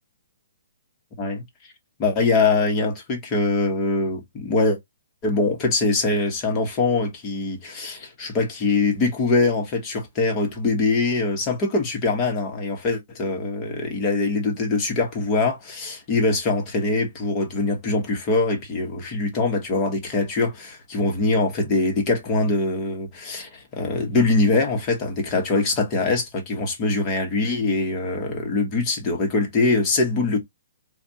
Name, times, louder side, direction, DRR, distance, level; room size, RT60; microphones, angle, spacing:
voice 1, 2.0-4.8 5.2-30.4, left 3 dB, 20° left, 1.1 m, -23 dB
4.9 x 2.3 x 2.8 m
hypercardioid pair, 165°, 0 cm